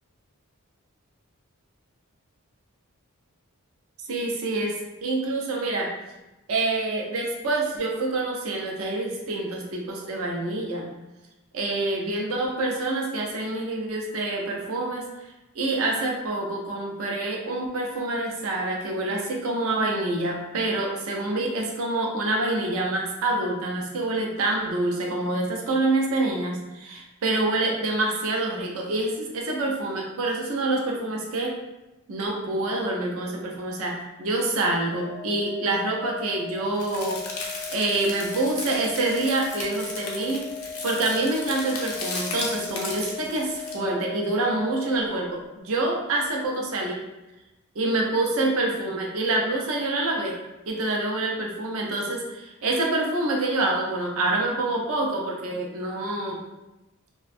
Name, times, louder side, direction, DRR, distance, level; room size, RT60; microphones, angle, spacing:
voice 1, 4.1-4.7 5.0-5.9 6.5-10.8 11.5-15.1 15.5-31.6 32.1-40.5 40.8-47.0 47.8-50.4 50.7-56.4, right 2 dB, 70° right, -1 dB, 0.4 m, -26 dB
Organ, 34.9-45.5, left 5 dB, 20° left, 0.3 m, -38 dB
sound 1, 36.8-43.7, left 3 dB, 80° left, 0.6 m, -36 dB
2.5 x 2.1 x 2.5 m, 1.0 s
head